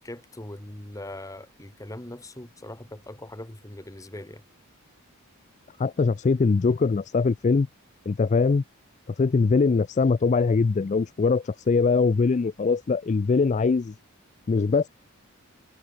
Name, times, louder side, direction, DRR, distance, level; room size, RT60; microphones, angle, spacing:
voice 1, 0.0-4.4, left 1 dB, 15° left, 1.3 m, -41 dB
voice 2, 5.8-7.7 8.1-8.6 9.2-13.9 14.5-14.9, left 4 dB, 30° left, 0.3 m, -22 dB
head